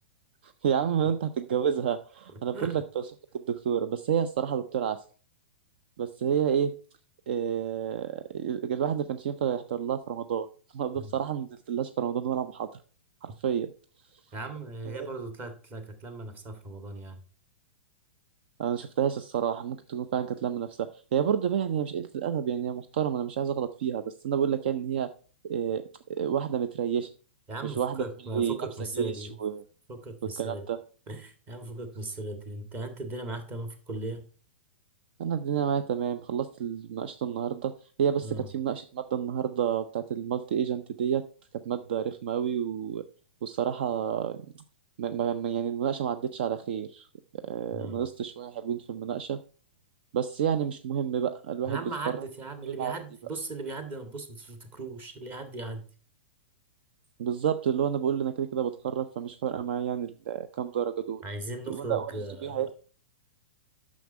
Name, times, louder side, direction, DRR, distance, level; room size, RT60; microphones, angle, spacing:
voice 1, 0.4-3.1 3.3-5.0 6.0-6.8 7.3-10.5 10.7-12.7 13.2-13.7 14.9-15.1 18.6-25.1 25.5-25.8 26.1-27.1 27.6-28.0 28.3-28.6 28.9-29.6 30.2-30.8 35.2-37.7 38.0-41.2 41.6-43.0 43.4-44.4 45.0-47.1 47.3-49.4 50.1-51.8 52.6-53.0 57.2-61.2 61.7-62.1 62.4-62.7, right 8 dB, 55° right, 11 dB, 0.5 m, -29 dB
voice 2, 14.3-17.2 27.5-29.4 29.9-30.6 31.1-34.2 38.2-38.5 47.7-48.1 51.7-55.8 61.2-62.6, right 2 dB, 30° right, 7 dB, 1.8 m, -38 dB
9.2 x 6.3 x 4.3 m, 0.39 s
figure-of-eight pair, 105°, 6 cm